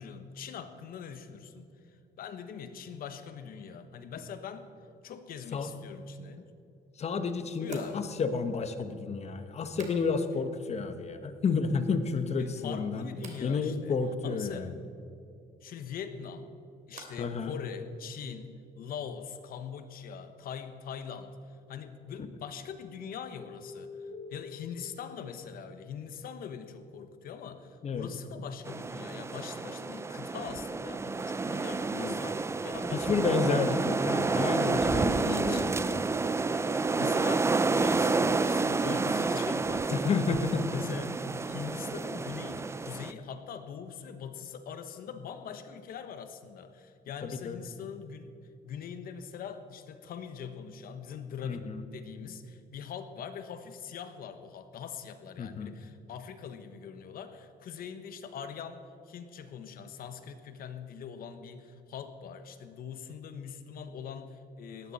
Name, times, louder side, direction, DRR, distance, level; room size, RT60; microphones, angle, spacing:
voice 1, 0.0-1.7 2.2-4.7 5.0-6.4 7.6-8.1 12.3-14.0 14.2-14.7 15.6-16.5 16.9-21.4 21.7-24.0 24.3-33.3 35.2-35.7 37.0-40.2 40.7-48.3 48.6-58.8 59.1-64.9, left 7 dB, 60° left, 9 dB, 1.2 m, -42 dB
sound 1, 6.4-6.5 7.6-10.5 10.7-11.3 11.7-12.3 13.1-13.5 15.9-17.4 17.6-18.2, right 4 dB, 45° right, 2.9 m, -52 dB
voice 2, 7.0-13.1 13.4-14.8 17.2-17.6 27.8-28.1 31.9-32.2 32.9-36.0 39.9-40.8 47.2-47.6 51.4-51.8 55.4-55.8, left 4 dB, 40° left, 9 dB, 1.2 m, -31 dB
sound 2, 22.5-26.6 30.7-32.1 33.0-38.5, left 5 dB, 80° left, 1.5 m, -50 dB
sound 3, 28.6-43.1, right 3 dB, 15° right, 0.5 m, -29 dB
18.5 x 13.5 x 4.2 m, 2.6 s
cardioid pair, 110°, 17 cm